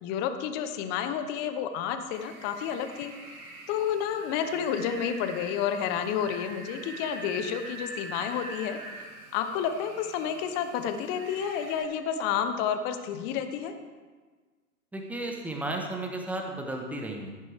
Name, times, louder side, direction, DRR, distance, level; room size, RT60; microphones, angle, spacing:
voice 1, 0.0-3.1 3.7-8.8 9.3-13.7, left 8 dB, 20° left, 8 dB, 0.8 m, -30 dB
sound 1, 2.1-11.8, right 2 dB, 30° right, 2.1 m, -44 dB
voice 2, 14.9-17.3, right 1 dB, 5° right, 2 dB, 1.2 m, -34 dB
14.5 x 10.5 x 3.5 m, 1.4 s
figure-of-eight pair, 120°, 47 cm